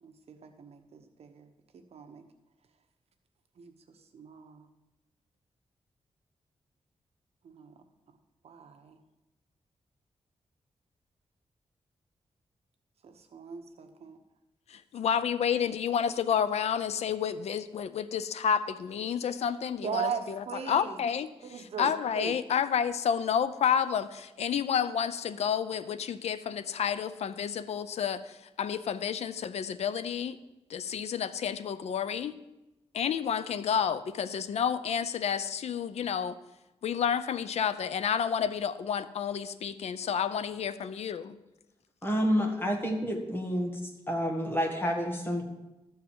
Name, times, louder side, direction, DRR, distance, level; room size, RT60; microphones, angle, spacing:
voice 1, 0.0-1.5 1.9-2.2 3.6-3.7 4.1-4.7 7.4-7.7 8.4-9.0 13.0-14.2 19.8-21.0 21.4-22.3, right 6 dB, 70° right, 6 dB, 1.1 m, -39 dB
voice 2, 14.7-21.3 21.6-30.4 30.7-32.3 32.9-36.4 36.8-41.4, left 8 dB, 90° left, 13 dB, 0.5 m, -30 dB
voice 3, 42.0-43.8 44.1-45.4, equal, 20° left, 2 dB, 1.7 m, -29 dB
13.5 x 4.6 x 7.5 m, 0.99 s
wide cardioid pair, 160°, 11 cm